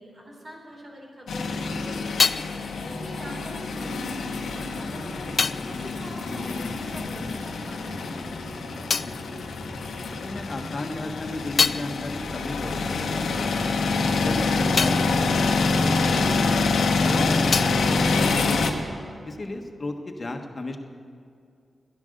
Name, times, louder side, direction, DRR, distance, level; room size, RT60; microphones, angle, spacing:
voice 1, 0.0-8.4 8.6-9.1, right 1 dB, 45° right, -1 dB, 4.3 m, -43 dB
sound 1, 1.3-18.7, left 3 dB, 85° left, 1.1 m, -26 dB
sound 2, 1.5-7.4 7.6-10.3 10.7-16.8 17.0-19.1, left 5 dB, 65° left, 0.3 m, -31 dB
voice 2, 10.1-13.8 14.2-16.5 17.0-18.8 19.2-20.8, left 2 dB, 45° left, 4 dB, 1.4 m, -34 dB
13.5 x 11.0 x 6.6 m, 2.3 s
cardioid pair, 55°, 0 cm